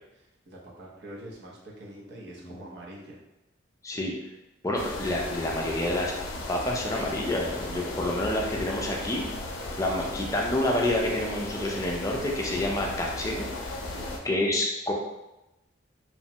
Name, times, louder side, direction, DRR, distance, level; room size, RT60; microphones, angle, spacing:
voice 1, 0.1-3.2 13.8-14.3, right 1 dB, 60° right, -3 dB, 0.6 m, -45 dB
voice 2, 4.6-6.1 6.5-9.3 9.8-13.5 14.2-14.9, left 1 dB, 15° left, -1 dB, 0.4 m, -28 dB
sound 1, 4.8-14.2, left 2 dB, 85° left, 0.4 m, -36 dB
2.9 x 2.1 x 2.7 m, 0.96 s
head